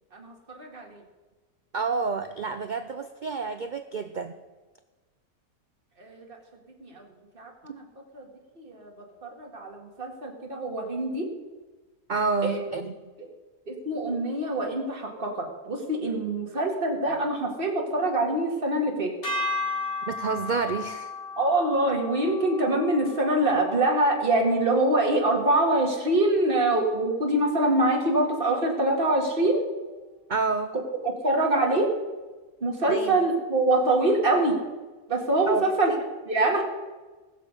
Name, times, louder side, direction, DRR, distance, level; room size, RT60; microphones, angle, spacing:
voice 1, 0.1-1.0 6.0-6.4 6.8-7.1 7.3-7.9 8.1-8.3 8.6-8.9 9.2-11.3 12.4-12.6 13.2-13.3 13.7-19.1 21.4-29.6 30.7-30.8 31.2-31.9 32.6-34.6 35.1-35.9 36.3-36.6, right 2 dB, 40° right, 0 dB, 2.2 m, -24 dB
voice 2, 1.7-4.4 12.1-12.9 20.1-21.1 30.3-30.7 32.9-33.2 35.4-35.6, right 4 dB, 55° right, 9 dB, 0.5 m, -29 dB
sound 1, 19.2-25.6, left 3 dB, 70° left, 3.2 m, -35 dB
20.5 x 6.9 x 5.3 m, 1.3 s
omnidirectional pair, 1.5 m